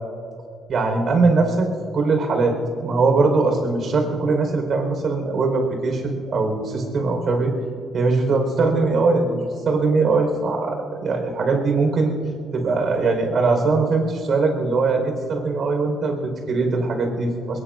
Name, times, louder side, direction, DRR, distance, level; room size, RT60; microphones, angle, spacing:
voice 1, 0.7-1.7 1.9-2.5 2.8-7.5 7.9-12.1 12.5-17.6, right 3 dB, 55° right, 3 dB, 5.0 m, -21 dB
23.0 x 21.0 x 2.7 m, 2.3 s
cardioid pair, 90°, 0 cm